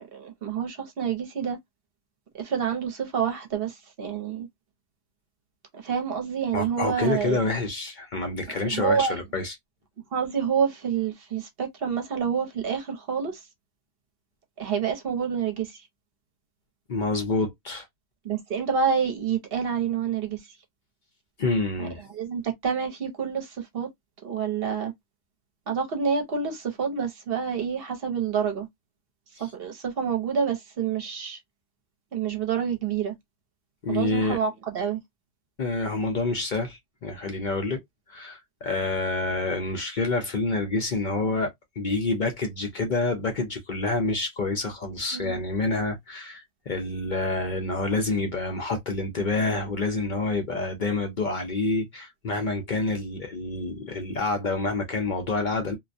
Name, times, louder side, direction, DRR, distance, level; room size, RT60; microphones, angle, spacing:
voice 1, 0.0-1.6 2.3-4.5 5.7-7.4 8.6-9.2 10.1-13.5 14.6-15.8 18.2-20.6 21.8-21.9 22.1-23.9 24.2-24.9 25.7-28.7 29.4-31.4 32.1-33.1 33.9-35.0 45.1-45.4, right 7 dB, 60° right, 0.9 m, -28 dB
voice 2, 6.5-9.5 16.9-17.9 21.4-22.0 33.8-34.4 35.6-37.8 38.1-55.8, left 3 dB, 50° left, 0.6 m, -28 dB
2.3 x 2.1 x 2.5 m
omnidirectional pair, 1.2 m